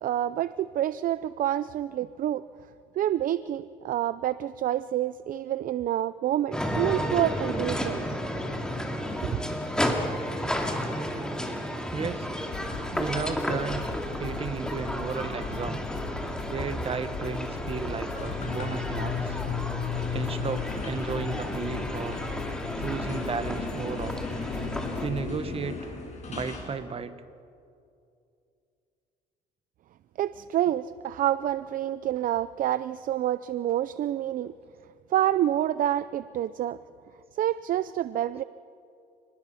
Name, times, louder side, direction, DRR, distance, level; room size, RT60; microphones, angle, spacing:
voice 1, 0.0-2.4 3.0-8.1 9.2-9.4 30.2-34.5 35.1-36.8 37.4-38.4, right 12 dB, 55° right, 15 dB, 0.5 m, -28 dB
sound 1, 6.5-25.1, equal, 5° left, 2.6 m, -33 dB
sound 2, 9.1-10.3 12.5-25.2, left 4 dB, 80° left, 3.3 m, -39 dB
voice 2, 11.9-12.3 12.9-13.8 14.2-15.8 16.4-19.4 20.1-22.2 22.8-24.2 25.0-25.8 26.3-27.2, right 5 dB, 35° right, 11 dB, 1.4 m, -34 dB
sound 3, 18.2-26.7, left 6 dB, 45° left, 6.1 m, -35 dB
29.0 x 20.0 x 5.7 m, 2.4 s
cardioid pair, 110°, 17 cm